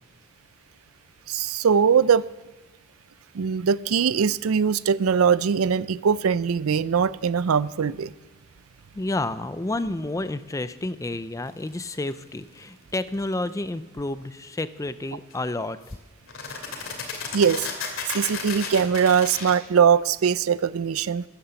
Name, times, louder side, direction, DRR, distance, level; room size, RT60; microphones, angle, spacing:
voice 1, 1.3-2.3 3.3-8.1 17.3-17.7 18.1-21.2, right 7 dB, 85° right, 18 dB, 0.5 m, -21 dB
voice 2, 8.9-15.8, left 2 dB, 15° left, 14 dB, 0.5 m, -30 dB
sound 1, 11.8-12.1 15.3-15.4 15.9-16.0 16.3-19.5, left 5 dB, 70° left, 2.6 m, -33 dB
13.5 x 10.5 x 7.0 m, 1.1 s
head